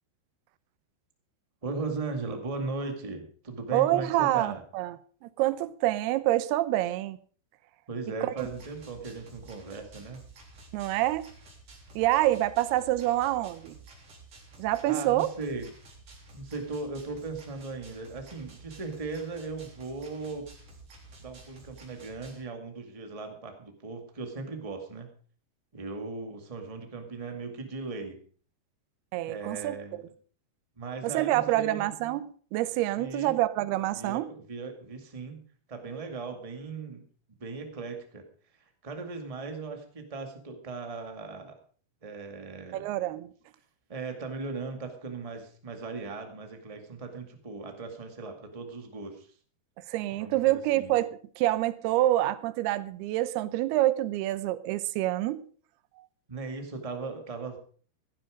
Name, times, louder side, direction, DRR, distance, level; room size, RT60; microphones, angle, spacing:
voice 1, 1.6-4.6 7.9-10.2 14.8-15.7 16.3-20.5 21.2-25.1 25.7-28.2 29.2-30.1 30.8-31.9 33.0-33.4 33.9-37.0 37.4-38.2 38.5-41.5 42.0-42.9 43.9-49.3 50.2-50.9 56.3-57.6, right 3 dB, 25° right, 5 dB, 0.7 m, -38 dB
voice 2, 3.7-5.0 5.2-7.2 8.2-8.5 10.7-11.3 12.0-13.8 14.6-15.3 29.1-29.8 31.0-34.3 42.7-43.3 49.9-51.1 51.4-55.4, right 15 dB, 80° right, 15 dB, 2.7 m, -27 dB
sound 1, 8.4-22.4, right 3 dB, 40° right, 4.2 m, -52 dB
15.5 x 11.5 x 5.0 m, 0.44 s
omnidirectional pair, 4.6 m